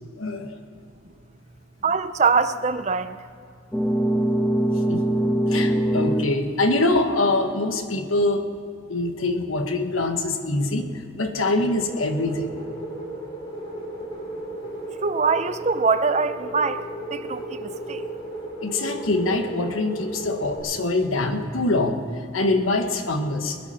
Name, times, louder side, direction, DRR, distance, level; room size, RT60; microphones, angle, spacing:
voice 1, 0.2-0.6 4.9-5.1 5.5-8.5 8.9-12.6 18.6-22.0 22.3-23.6, left 2 dB, 85° left, 6 dB, 1.4 m, -24 dB
voice 2, 1.8-3.2 15.0-16.8 17.1-18.0, right 5 dB, 35° right, 12 dB, 0.5 m, -23 dB
sound 1, 3.7-6.4, right 1 dB, 5° left, 1.0 m, -22 dB
sound 2, 11.7-20.6, right 1 dB, 25° left, 3.5 m, -35 dB
20.5 x 10.5 x 5.7 m, 2.4 s
head